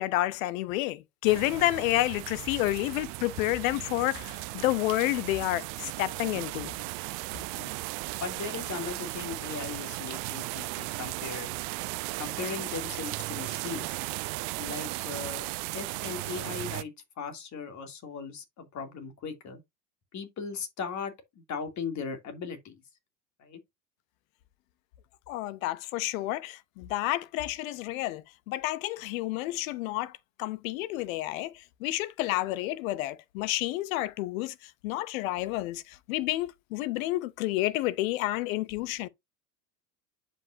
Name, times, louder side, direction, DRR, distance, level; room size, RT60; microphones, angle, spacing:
voice 1, 0.0-6.7 25.3-39.1, left 16 dB, 55° left, 0.8 m, -30 dB
sound 1, 1.3-16.8, right 23 dB, 40° right, 0.5 m, -36 dB
voice 2, 8.2-11.5 12.2-13.9 14.5-19.6 20.1-22.8 23.4-23.6, left 5 dB, 35° left, 2.6 m, -38 dB
10.5 x 5.5 x 2.6 m
hypercardioid pair, 85°, 49 cm